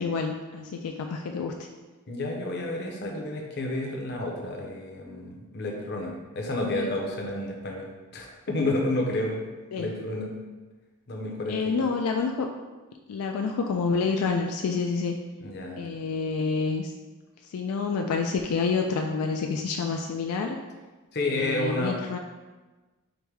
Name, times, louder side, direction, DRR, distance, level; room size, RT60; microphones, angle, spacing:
voice 1, 0.0-1.5 6.7-6.9 9.7-9.9 11.5-12.5 13.1-15.2 15.8-16.9 17.5-20.6 21.2-22.2, left 4 dB, 85° left, 3 dB, 0.3 m, -28 dB
voice 2, 2.1-9.4 9.8-10.3 11.1-11.8 15.4-15.8 21.1-22.0, left 2 dB, 50° left, 0 dB, 0.7 m, -30 dB
5.1 x 2.1 x 4.6 m, 1.2 s
head